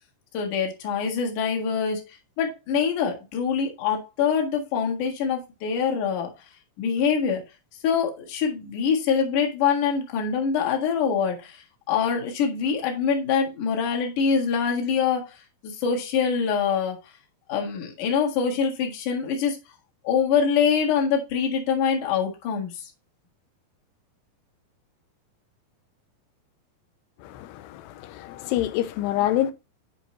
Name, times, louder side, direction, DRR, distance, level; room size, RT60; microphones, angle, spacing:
voice 1, 0.3-6.3 6.8-7.4 7.8-17.0 17.5-19.6 20.0-22.9, left 6 dB, 55° left, 2.7 m, -24 dB
voice 2, 27.2-29.5, left 13 dB, 80° left, 2.7 m, -27 dB
8.8 x 5.1 x 3.0 m
omnidirectional pair, 5.2 m